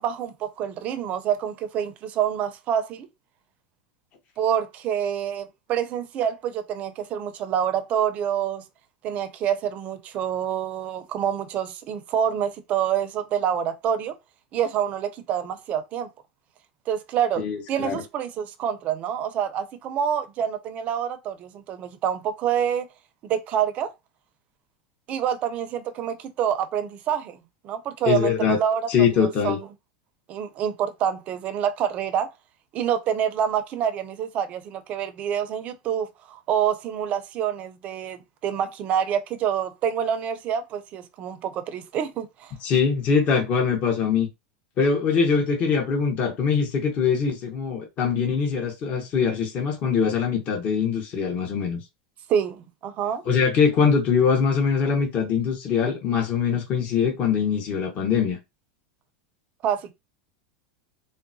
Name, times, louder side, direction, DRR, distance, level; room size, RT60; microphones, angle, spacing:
voice 1, 0.0-3.1 4.4-8.6 9.0-14.1 14.5-16.1 16.9-17.4 17.7-22.9 23.2-23.9 25.1-28.8 29.1-29.6 30.3-32.3 32.7-42.5 52.3-53.2 59.6-59.9, right 9 dB, 35° right, 0.5 m, -27 dB
voice 2, 17.4-18.0 28.0-28.6 28.9-29.6 42.6-44.3 44.8-51.8 53.2-58.4, left 6 dB, 35° left, 0.9 m, -22 dB
3.7 x 2.1 x 2.6 m
supercardioid pair, 140°, 4 cm